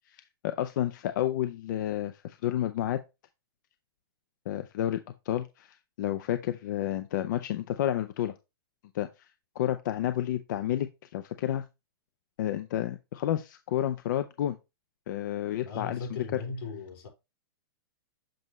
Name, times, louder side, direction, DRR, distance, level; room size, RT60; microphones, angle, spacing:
voice 1, 0.4-3.0 4.5-8.3 8.9-9.1 9.6-11.6 12.4-14.6 15.1-16.0, left 12 dB, 55° left, 0.6 m, -30 dB
voice 2, 15.6-17.1, left 4 dB, 85° left, 4.4 m, -38 dB
7.7 x 5.3 x 3.0 m
hypercardioid pair, 155°, 12 cm